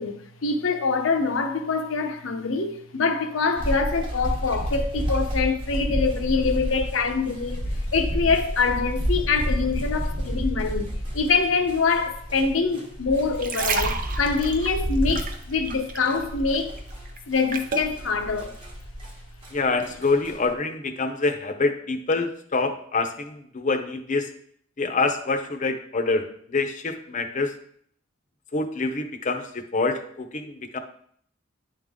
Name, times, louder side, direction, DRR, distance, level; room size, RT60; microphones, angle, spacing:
voice 1, 0.0-7.7 7.9-16.7 17.3-18.6, left 4 dB, 90° left, 0.8 m, -25 dB
sound 1, 3.6-19.5 19.8-20.5, equal, 30° right, 1.1 m, -30 dB
sound 2, 13.2-16.2 16.5-17.9 18.5-18.7, right 5 dB, 45° right, 0.6 m, -31 dB
voice 2, 19.5-24.3 24.8-27.5 28.5-30.8, left 3 dB, 40° left, 0.7 m, -26 dB
9.8 x 3.7 x 3.5 m
head